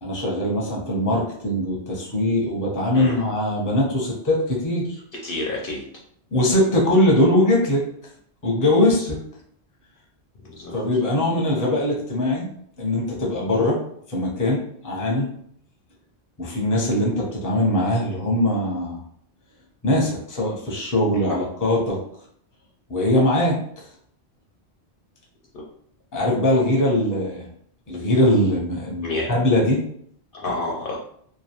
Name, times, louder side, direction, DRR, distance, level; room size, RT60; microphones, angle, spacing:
voice 1, 0.0-5.0 6.3-7.9 8.4-9.2 10.7-12.5 12.8-15.3 16.4-19.0 19.8-22.0 22.9-23.9 26.1-27.5 27.9-29.8, left 1 dB, 20° left, -3 dB, 0.6 m, -21 dB
voice 2, 5.2-5.8 9.0-9.1 10.4-10.7 21.3-21.4 25.5-25.6 29.0-29.3 30.3-31.0, left 2 dB, 65° left, -2 dB, 0.7 m, -29 dB
2.3 x 2.2 x 2.9 m, 0.65 s
omnidirectional pair, 1.1 m